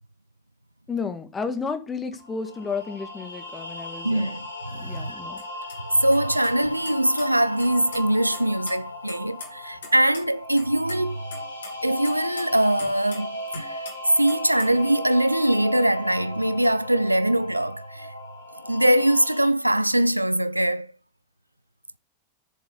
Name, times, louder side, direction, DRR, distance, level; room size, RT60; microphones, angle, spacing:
voice 1, 0.9-4.3 4.7-5.4, left 5 dB, 15° left, 1.7 m, -32 dB
sound 1, 2.2-19.5, left 1 dB, 85° left, 3.2 m, -37 dB
voice 2, 4.0-5.1 5.9-11.2 11.8-13.8 14.2-18.1 18.6-20.9, right 1 dB, 85° right, 0.4 m, -22 dB
sound 2, 5.4-5.5 5.7-5.8 6.1-6.2 6.4-7.2 7.6-8.0 8.3-9.9 10.1-10.2 10.6-11.0 11.3-13.3 13.5-13.9 14.3-14.8, left 4 dB, 65° left, 3.4 m, -40 dB
7.4 x 7.1 x 7.9 m
figure-of-eight pair, 90°, 0 cm